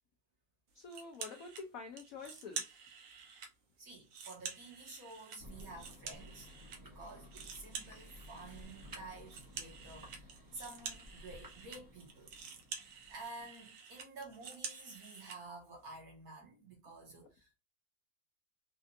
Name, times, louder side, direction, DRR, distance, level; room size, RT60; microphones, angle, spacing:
voice 1, 0.7-2.7, left 4 dB, 75° left, 0.8 m, -47 dB
sound 1, 0.9-1.6 2.0-3.5 3.9-6.8 7.1-15.4, right 6 dB, 90° right, 1.6 m, -48 dB
voice 2, 3.8-6.5 6.8-12.3 12.8-17.6, right 3 dB, 55° right, 1.6 m, -51 dB
Thunder, 5.4-13.7, left 1 dB, 15° right, 0.7 m, -55 dB
4.3 x 2.4 x 2.6 m
omnidirectional pair, 2.1 m